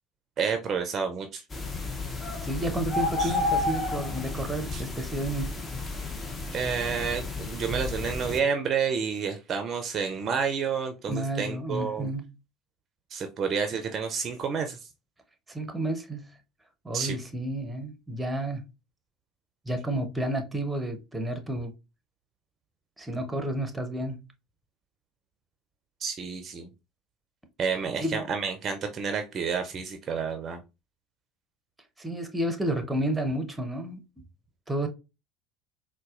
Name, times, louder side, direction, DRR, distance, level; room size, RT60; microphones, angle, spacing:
voice 1, 0.4-1.4 3.2-3.3 4.7-4.8 6.5-12.1 13.1-14.9 16.9-17.2 26.0-26.7 27.6-30.6, right 6 dB, 40° right, 0.4 m, -30 dB
sound 1, 1.5-8.4, left 3 dB, 25° left, 0.7 m, -32 dB
voice 2, 2.4-5.6 11.1-12.3 15.5-16.3 16.8-18.6 19.7-21.7 23.0-24.2 28.0-28.2 32.0-34.0 34.7-34.9, right 1 dB, 10° right, 0.7 m, -31 dB
4.0 x 2.2 x 2.3 m
hypercardioid pair, 65°, 0 cm